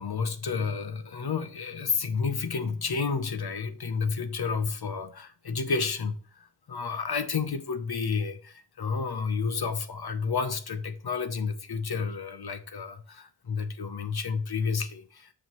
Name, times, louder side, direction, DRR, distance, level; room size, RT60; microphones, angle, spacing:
voice 1, 0.0-15.3, left 5 dB, 65° left, 0.9 m, -31 dB
6.9 x 6.4 x 3.1 m
cardioid pair, 45°, 41 cm